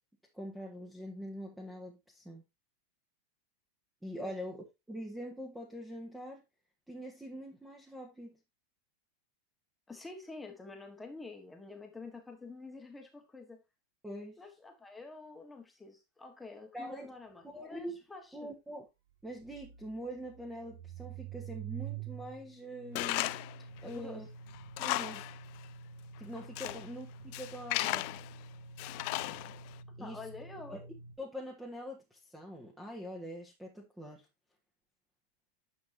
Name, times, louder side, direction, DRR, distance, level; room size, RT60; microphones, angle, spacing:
voice 1, 0.3-2.4 4.0-6.4 6.9-8.4 14.0-14.4 16.7-17.1 17.4-18.0 18.3-18.9 19.2-23.4 23.8-24.3 24.8-25.3 26.2-28.1 30.0-30.2 30.7-30.8 31.2-34.2, equal, 5° right, 1.5 m, -44 dB
voice 2, 9.9-13.6 14.4-18.5 23.8-24.3 26.6-26.8 30.0-30.9, left 3 dB, 10° left, 1.5 m, -48 dB
sound 1, 17.2-17.3 17.5-17.6 19.1-31.2, right 6 dB, 75° right, 2.5 m, -48 dB
Tools, 23.0-23.6 24.0-24.1 24.5-25.4 25.6-25.7 26.3-26.9 27.3-28.3 28.8-29.7, left 20 dB, 55° left, 0.4 m, -35 dB
9.5 x 5.4 x 2.8 m
hypercardioid pair, 105°, 0 cm